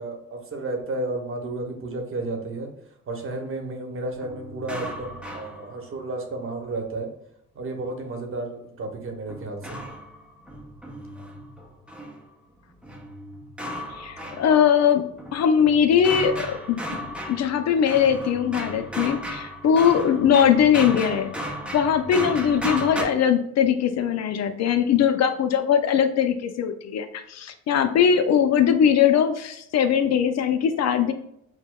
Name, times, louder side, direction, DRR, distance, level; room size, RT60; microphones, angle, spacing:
voice 1, 0.0-2.7 3.1-7.1 7.5-9.8, right 2 dB, 45° right, 3 dB, 0.9 m, -32 dB
sound 1, 4.2-6.1 9.3-12.2 12.8-14.8 15.2-23.0, equal, 5° right, 0.7 m, -35 dB
voice 2, 14.0-15.0 15.3-16.8 17.3-21.3 21.7-31.1, left 8 dB, 60° left, 8 dB, 0.5 m, -20 dB
6.1 x 2.1 x 2.3 m, 0.74 s
cardioid pair, 90°, 30 cm